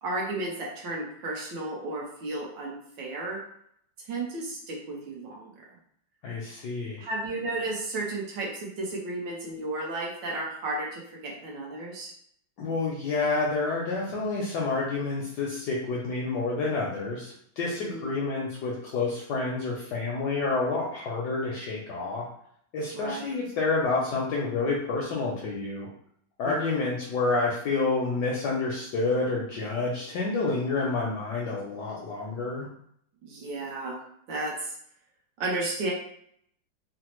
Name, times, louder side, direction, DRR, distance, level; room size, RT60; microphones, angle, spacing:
voice 1, 0.0-3.4 4.1-5.6 7.0-12.1 17.9-18.3 22.9-23.3 26.4-26.9 33.2-33.9 34.3-34.7 35.4-35.9, right 2 dB, 70° right, -2 dB, 1.4 m, -33 dB
voice 2, 6.2-7.0 12.6-22.3 22.7-25.9 26.4-32.7, left 3 dB, 70° left, -3 dB, 1.0 m, -29 dB
4.0 x 2.0 x 3.0 m, 0.67 s
omnidirectional pair, 2.3 m